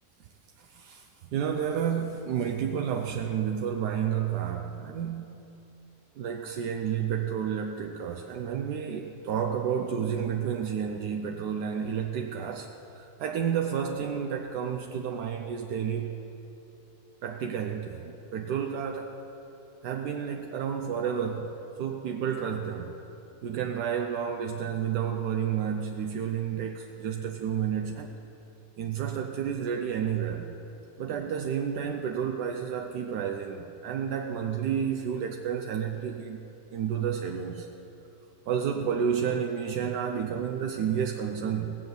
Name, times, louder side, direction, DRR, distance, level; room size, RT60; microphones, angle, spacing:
voice 1, 1.3-5.4 6.2-12.7 13.2-16.1 17.2-19.1 19.8-21.5 21.8-22.9 23.4-28.1 28.8-30.5 31.0-36.4 36.7-37.7 38.5-41.8, right 8 dB, 90° right, 3 dB, 1.3 m, -30 dB
17.5 x 7.8 x 6.8 m, 2.8 s
omnidirectional pair, 1.7 m